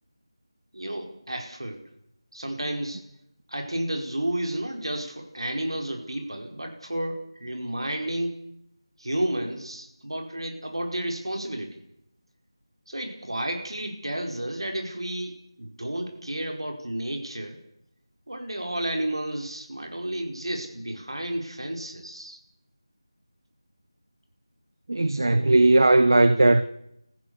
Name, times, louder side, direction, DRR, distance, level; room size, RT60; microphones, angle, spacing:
voice 1, 0.7-1.8 2.3-3.0 3.5-8.4 9.0-11.8 12.9-17.6 18.3-22.4, right 1 dB, 75° right, 5.0 m, -31 dB
voice 2, 24.9-26.6, right 2 dB, 55° right, 1.0 m, -18 dB
29.0 x 15.0 x 7.1 m
figure-of-eight pair, 165°, 3 cm